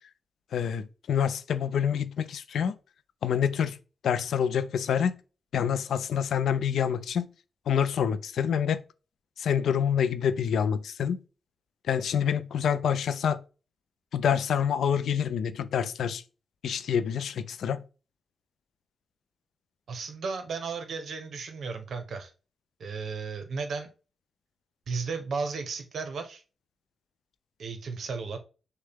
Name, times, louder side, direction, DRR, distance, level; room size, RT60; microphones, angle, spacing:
voice 1, 0.5-2.8 3.2-3.8 4.0-5.2 5.5-7.3 7.7-8.8 9.4-11.2 11.9-13.4 14.1-16.2 16.6-17.8, left 8 dB, 85° left, 0.4 m, -27 dB
voice 2, 19.9-22.3 22.8-23.9 24.9-26.4 27.6-28.4, right 4 dB, 65° right, 0.9 m, -34 dB
6.3 x 2.2 x 3.5 m
wide cardioid pair, 120°, 0 cm